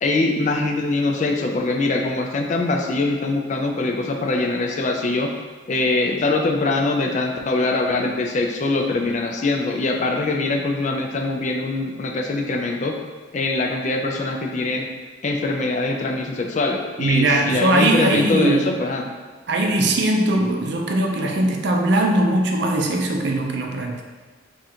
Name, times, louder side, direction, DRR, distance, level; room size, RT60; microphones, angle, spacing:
voice 1, 0.0-5.3 5.7-12.9 13.3-14.9 15.2-19.1, left 2 dB, 40° left, 2 dB, 0.4 m, -23 dB
voice 2, 17.0-18.7 19.5-24.0, right 1 dB, 60° right, 2 dB, 0.5 m, -20 dB
3.7 x 2.5 x 4.2 m, 1.4 s
head